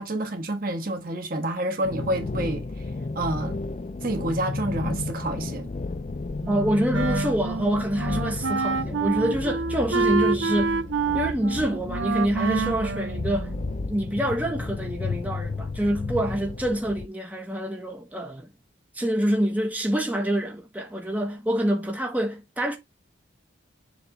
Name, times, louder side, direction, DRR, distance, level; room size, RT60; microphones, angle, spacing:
voice 1, 0.0-2.6 3.1-3.6 4.0-5.7, right 1 dB, 50° right, 1.5 m, -28 dB
sound 1, 1.8-17.1, left 3 dB, 35° left, 0.4 m, -32 dB
Wind instrument woodwind instrument, 6.4-13.9, right 5 dB, 75° right, 0.6 m, -28 dB
voice 2, 6.5-10.8 11.1-13.5 13.8-18.6 18.9-22.8, right 1 dB, 10° right, 1.4 m, -26 dB
7.3 x 3.6 x 4.9 m
head